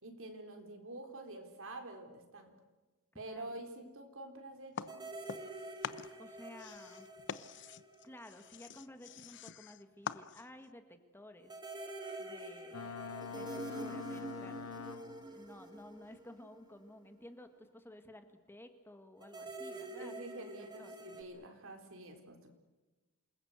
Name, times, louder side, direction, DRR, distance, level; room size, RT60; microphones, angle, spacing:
voice 1, 0.0-2.5 3.1-5.1 20.0-22.5, right 2 dB, 65° right, 5 dB, 4.2 m, -48 dB
voice 2, 3.1-3.6 6.2-7.1 8.0-11.6 12.2-12.9 13.3-14.8 15.2-21.0, left 1 dB, 10° left, 7 dB, 1.7 m, -54 dB
sound 1, 4.8-5.6 5.8-10.7, left 6 dB, 55° left, 0.8 m, -45 dB
sound 2, 4.9-8.6 8.9-9.0 11.5-16.9 19.2-21.2, right 2 dB, 20° right, 2.4 m, -47 dB
Boat Water vehicle, 12.7-15.4, left 6 dB, 90° left, 0.9 m, -45 dB
28.0 x 20.0 x 8.1 m, 1.2 s
head